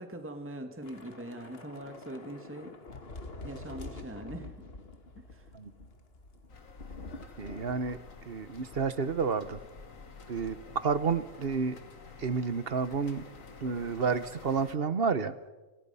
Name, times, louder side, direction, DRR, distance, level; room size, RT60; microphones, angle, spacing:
voice 1, 0.0-2.8 3.4-4.5 5.2-5.5, right 1 dB, 10° right, 5 dB, 1.8 m, -42 dB
Thunder / Rain, 0.8-9.4 9.7-9.9 10.2-10.5, left 2 dB, 45° left, 2.0 m, -47 dB
sound 1, 6.5-14.8, left 4 dB, 70° left, 2.3 m, -50 dB
voice 2, 7.4-8.0 8.3-9.6 10.3-11.8 12.2-13.2 13.6-15.5, right 5 dB, 45° right, 14 dB, 1.1 m, -30 dB
29.5 x 27.0 x 5.6 m, 1.2 s
omnidirectional pair, 1.4 m